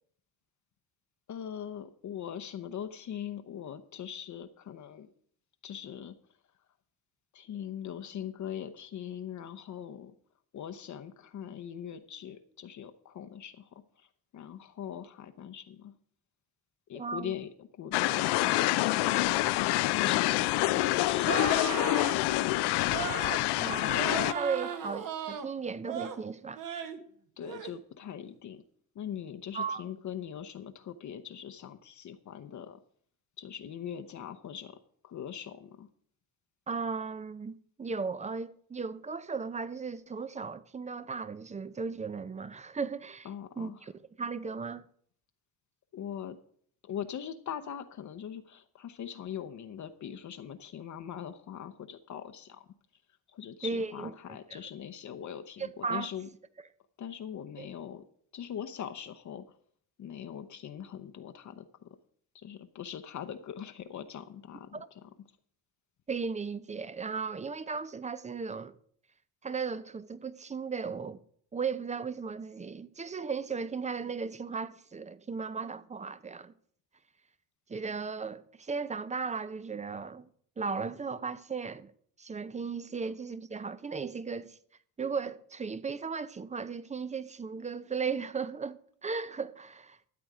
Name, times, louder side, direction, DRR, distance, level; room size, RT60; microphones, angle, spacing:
voice 1, 1.3-5.1 5.6-6.2 7.3-10.1 10.5-15.9 16.9-21.7 27.4-28.6 28.9-32.8 33.4-34.8 35.0-35.9 43.2-43.9 45.9-46.4 46.8-52.7 53.3-56.3 57.0-58.1 58.3-59.6 60.0-62.0 62.3-65.0, left 9 dB, 45° left, 0.8 m, -41 dB
voice 2, 17.0-17.3 23.6-26.6 29.5-29.8 36.7-43.3 43.6-43.9 44.2-44.9 53.6-54.1 54.5-54.6 55.8-56.1 57.6-57.7 64.7-64.9 66.1-68.7 69.4-71.2 71.5-76.5 77.7-80.3 80.6-81.9 82.2-84.6 85.0-90.0, right 5 dB, 20° right, 0.5 m, -36 dB
sound 1, 17.9-24.3, left 18 dB, 85° left, 0.5 m, -27 dB
sound 2, 21.2-22.2 22.9-23.4 23.9-25.5 25.8-26.2 26.6-27.0 27.4-27.7, right 8 dB, 55° right, 1.3 m, -36 dB
13.0 x 7.8 x 4.8 m
cardioid pair, 105°, 39 cm